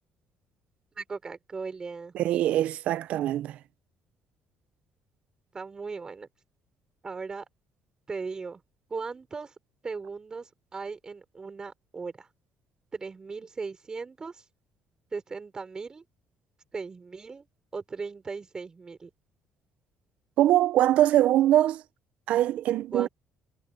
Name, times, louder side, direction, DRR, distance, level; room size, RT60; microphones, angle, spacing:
voice 1, 1.0-2.1 5.5-6.3 7.0-7.5 8.1-8.6 8.9-9.5 9.8-12.3 12.9-14.4 15.1-16.0 16.7-17.5 17.7-19.1 22.9-23.1, right 4 dB, 30° right, 5.2 m, -37 dB
voice 2, 2.1-3.6 20.4-21.8 22.3-23.1, right 13 dB, 75° right, 0.8 m, -23 dB
supercardioid pair, 80°, 2 cm